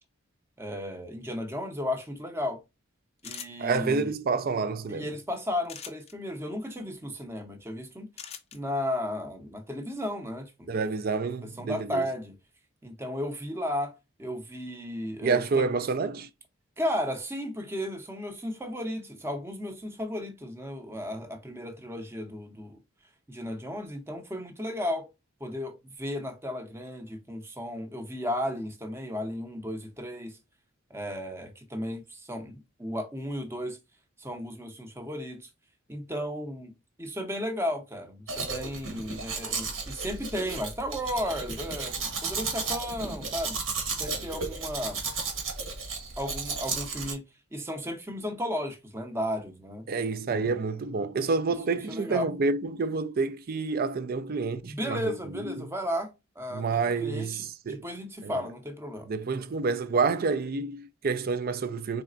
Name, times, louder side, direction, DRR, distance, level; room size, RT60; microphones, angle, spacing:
voice 1, 0.6-2.6 3.2-4.1 4.9-8.1 8.5-10.8 11.4-12.3 12.8-13.9 14.2-15.6 16.8-22.8 23.3-25.1 25.4-30.3 30.9-33.8 34.2-35.5 35.9-36.7 37.0-43.6 44.0-45.0 46.2-47.2 47.5-49.9 50.3-50.6 51.9-52.3 54.6-56.1 56.4-59.1, left 1 dB, 10° right, 0.7 m, -34 dB
sound 1, 3.2-3.8 5.6-6.1 8.2-8.6, left 8 dB, 30° left, 0.5 m, -41 dB
voice 2, 3.6-5.1 10.7-12.0 15.2-16.3 49.9-55.0 55.5-55.7 56.5-57.9 58.2-58.4 59.1-62.0, right 4 dB, 45° right, 0.4 m, -28 dB
Domestic sounds home sounds, 38.3-47.1, right 4 dB, 80° right, 1.3 m, -34 dB
4.1 x 3.4 x 2.4 m
head